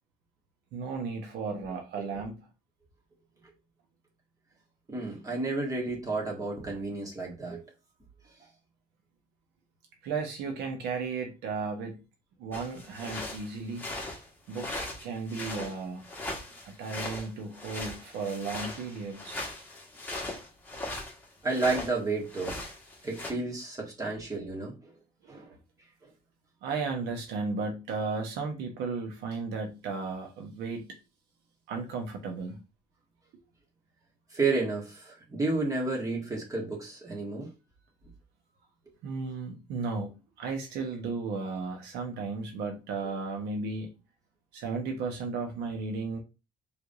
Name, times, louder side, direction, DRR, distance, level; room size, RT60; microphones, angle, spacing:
voice 1, 0.7-2.4 10.0-12.0 12.4-13.9 14.5-16.0 16.6-19.4 24.1-24.2 25.3-25.6 26.6-30.9 31.7-32.6 39.0-43.9 44.5-46.2, right 4 dB, 85° right, 1.1 m, -34 dB
voice 2, 4.9-7.6 21.4-22.6 23.0-24.9 25.3-25.5 26.0-26.1 34.3-37.5 43.0-43.1, right 3 dB, 20° right, 1.9 m, -31 dB
sound 1, 12.5-22.0 22.3-23.3, left 2 dB, 10° left, 1.6 m, -39 dB
4.7 x 3.5 x 2.6 m
cardioid pair, 110°, 17 cm